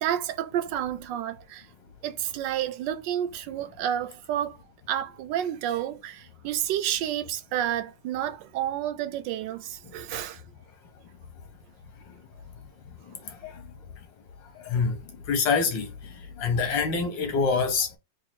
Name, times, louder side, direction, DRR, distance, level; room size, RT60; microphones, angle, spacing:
voice 1, 0.0-1.7 2.0-4.6 4.9-10.4, right 11 dB, 80° right, 1.2 m, -30 dB
voice 2, 15.3-15.9 16.4-17.9, left 5 dB, 80° left, 1.8 m, -24 dB
4.3 x 2.4 x 4.4 m
omnidirectional pair, 1.9 m